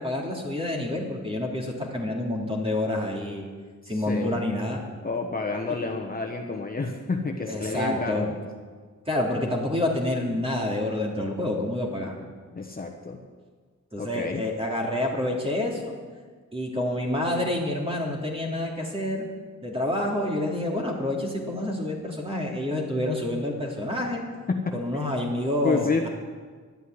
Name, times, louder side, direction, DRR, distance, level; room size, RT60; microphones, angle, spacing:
voice 1, 0.0-3.5 3.9-4.8 7.5-8.3 9.1-12.3 13.9-16.0 16.5-19.3 19.6-24.2 24.7-26.1, left 1 dB, 20° right, -1 dB, 3.0 m, -28 dB
voice 2, 3.8-4.4 5.0-8.3 12.5-13.2 14.0-14.5 24.5-25.2 25.6-26.1, left 4 dB, 30° left, 1 dB, 1.1 m, -30 dB
11.5 x 9.3 x 9.6 m, 1.5 s
wide cardioid pair, 110°, 31 cm